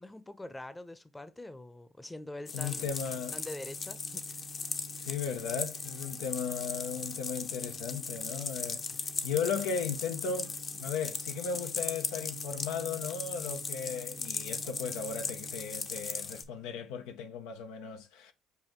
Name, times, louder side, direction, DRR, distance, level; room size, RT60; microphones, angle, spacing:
voice 1, 0.0-2.9 3.3-4.6, left 1 dB, 15° left, 0.7 m, -44 dB
voice 2, 2.5-3.4 4.9-8.8 9.2-18.3, left 6 dB, 85° left, 0.7 m, -36 dB
sound 1, 2.5-16.4, left 5 dB, 45° left, 0.8 m, -38 dB
sound 2, 2.6-17.1, right 8 dB, 25° right, 0.6 m, -51 dB
6.8 x 2.6 x 3.0 m
supercardioid pair, 70°, 0 cm